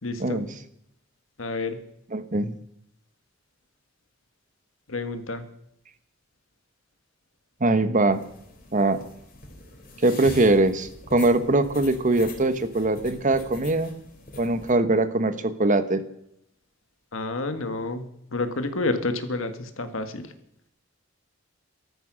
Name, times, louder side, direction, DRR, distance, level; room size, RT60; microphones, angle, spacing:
voice 1, 0.0-0.5 1.4-1.8 4.9-5.4 17.1-18.0 18.3-20.3, left 2 dB, 75° left, 9 dB, 1.7 m, -29 dB
voice 2, 2.1-2.5 7.6-8.2 8.7-9.0 10.0-13.9 14.4-16.0, right 2 dB, 40° right, 12 dB, 1.1 m, -22 dB
sound 1, 8.1-14.7, left 2 dB, 45° left, 3.6 m, -43 dB
14.0 x 13.5 x 6.3 m, 0.76 s
head